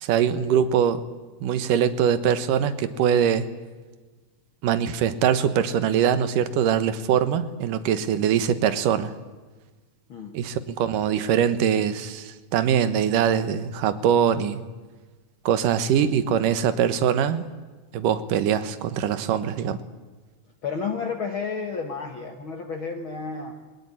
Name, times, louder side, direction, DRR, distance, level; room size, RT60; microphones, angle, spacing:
voice 1, 0.0-1.0 1.4-3.5 4.6-9.1 10.3-14.6 15.5-17.4 17.9-19.8, right 8 dB, 85° right, 12 dB, 2.8 m, -22 dB
voice 2, 10.1-10.4 20.6-23.5, left 5 dB, 50° left, 4 dB, 1.9 m, -31 dB
22.0 x 19.5 x 10.0 m, 1.3 s
omnidirectional pair, 3.7 m